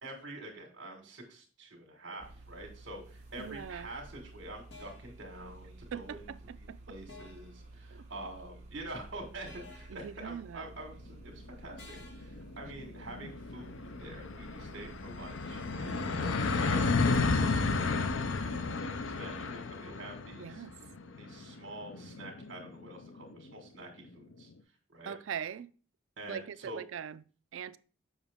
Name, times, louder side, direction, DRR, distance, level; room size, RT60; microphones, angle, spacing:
voice 1, 0.0-18.7 19.0-20.6 21.2-24.5 24.9-25.1 26.2-26.8, right 1 dB, 65° right, 1.7 m, -47 dB
sound 1, 2.2-18.6, right 2 dB, 35° right, 1.5 m, -52 dB
voice 2, 3.4-3.9 5.9-6.8 7.9-8.0 9.9-10.7 20.4-20.7 25.1-25.7 26.3-27.2 27.5-27.8, right 8 dB, 80° right, 0.4 m, -41 dB
sound 2, 3.5-3.7 4.7-5.2 7.1-7.6 9.5-10.1 11.8-12.4, left 3 dB, 60° left, 1.8 m, -52 dB
sound 3, 11.2-11.3 11.6-11.7 12.0-23.4, left 3 dB, 80° left, 0.6 m, -33 dB
7.1 x 5.5 x 3.6 m
head